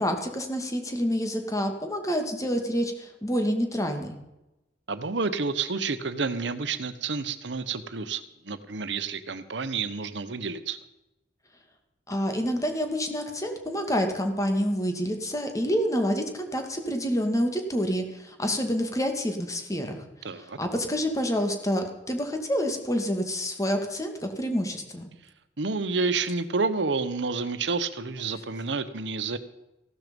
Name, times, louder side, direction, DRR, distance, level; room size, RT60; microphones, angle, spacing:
voice 1, 0.0-4.2 12.1-20.0 20.4-25.1, equal, 20° left, 5 dB, 2.1 m, -28 dB
voice 2, 4.9-10.8 20.2-20.6 25.6-29.4, right 4 dB, 75° right, 12 dB, 1.0 m, -29 dB
15.5 x 12.5 x 5.3 m, 0.94 s
head